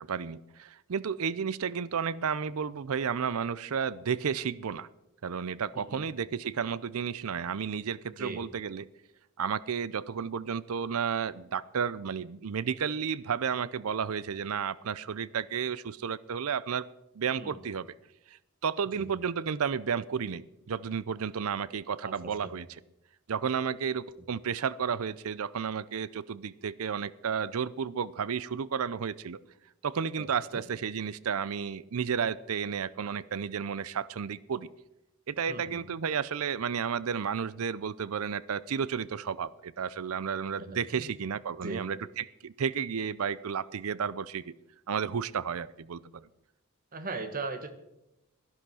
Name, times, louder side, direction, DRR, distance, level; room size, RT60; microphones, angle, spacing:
voice 1, 0.0-4.9 5.2-8.9 9.4-16.9 17.2-17.9 18.6-22.8 23.3-29.4 29.8-34.7 35.3-44.5 44.9-46.2, right 7 dB, 70° right, 20 dB, 0.5 m, -32 dB
voice 2, 5.7-6.1 8.2-8.4 17.4-17.5 18.9-19.1 22.0-22.5 30.2-30.3 30.5-30.6 35.5-35.8 40.6-40.7 40.9-41.1 41.6-41.9 46.9-47.7, right 3 dB, 40° right, 9 dB, 1.3 m, -38 dB
12.0 x 11.5 x 6.2 m, 0.89 s
head